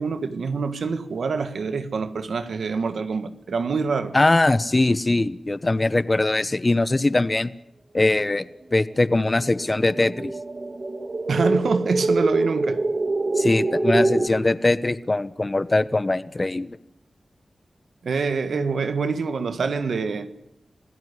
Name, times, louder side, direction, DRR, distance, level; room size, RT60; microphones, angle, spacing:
voice 1, 0.0-4.1 11.3-12.8 18.0-20.3, right 4 dB, 90° right, 1.6 m, -25 dB
voice 2, 4.1-7.5 7.9-10.3 13.4-16.8, left 2 dB, 35° left, 1.1 m, -21 dB
sound 1, 9.2-14.3, right 2 dB, 45° right, 2.5 m, -24 dB
26.5 x 16.5 x 10.0 m
cardioid pair, 50°, 0 cm